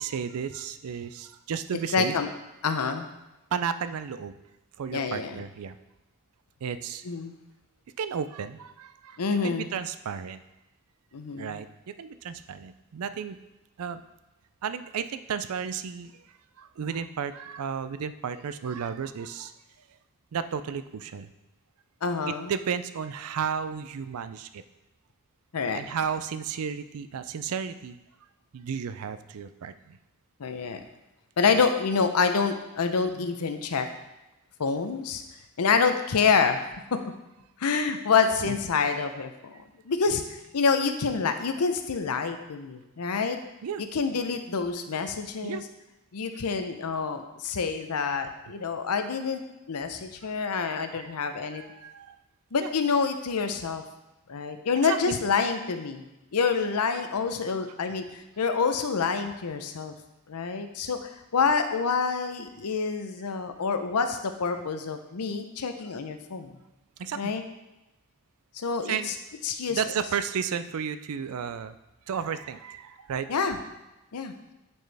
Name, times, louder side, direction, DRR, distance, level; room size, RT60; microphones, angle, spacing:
voice 1, 0.0-2.2 3.5-4.4 4.8-5.8 6.6-7.0 8.0-10.4 11.4-13.4 13.8-14.0 14.6-16.1 16.6-19.5 20.3-21.3 22.3-24.6 25.7-28.0 28.5-30.0 31.5-31.7 38.4-38.6 40.1-40.2 43.6-43.9 45.4-45.6 50.4-51.2 51.5-52.2 52.6-52.7 54.8-55.1 57.9-58.0 67.0-67.3 68.8-69.1 69.7-71.8 72.1-73.4, right 7 dB, 75° right, 12 dB, 0.4 m, -33 dB
voice 2, 1.9-2.3 2.6-3.0 4.9-5.4 7.1-7.3 9.2-9.7 11.1-11.6 22.0-22.5 25.5-25.8 30.4-30.8 31.4-33.9 34.6-35.2 35.6-36.6 36.9-37.0 37.6-39.6 39.9-40.2 40.5-43.4 43.9-45.6 46.1-49.4 49.7-51.6 52.5-53.8 54.3-56.0 56.3-59.9 60.3-66.5 67.2-67.4 68.5-69.1 69.4-69.8 73.3-73.6 74.1-74.3, left 5 dB, 85° left, 8 dB, 0.6 m, -27 dB
9.3 x 4.4 x 3.4 m, 0.99 s
head